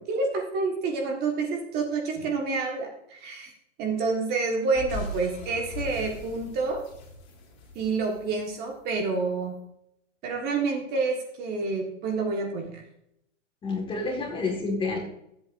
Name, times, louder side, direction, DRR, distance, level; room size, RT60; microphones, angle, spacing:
voice 1, 0.0-3.5 3.8-6.8 7.7-9.6 10.2-12.8, right 4 dB, 25° right, 1 dB, 1.6 m, -28 dB
sound 1, 4.7-9.1, left 3 dB, 35° left, 3.8 m, -40 dB
voice 2, 13.6-15.0, left 3 dB, 15° left, 2 dB, 1.8 m, -29 dB
19.5 x 7.9 x 2.6 m, 0.79 s
hypercardioid pair, 145°, 37 cm